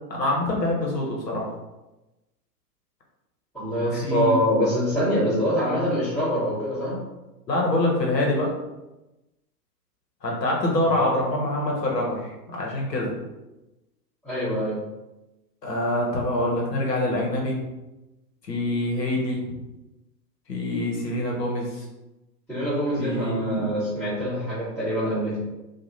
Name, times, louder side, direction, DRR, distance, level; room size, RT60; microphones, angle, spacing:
voice 1, 0.1-1.5 3.9-4.4 7.5-8.5 10.2-13.1 15.6-17.6 18.4-19.4 20.5-21.8 23.0-23.7, left 1 dB, 75° left, -2 dB, 1.1 m, -25 dB
voice 2, 3.5-7.0 14.2-14.7 22.5-25.4, equal, ahead, -16 dB, 1.1 m, -25 dB
2.9 x 2.4 x 2.6 m, 1.0 s
figure-of-eight pair, 105°, 49 cm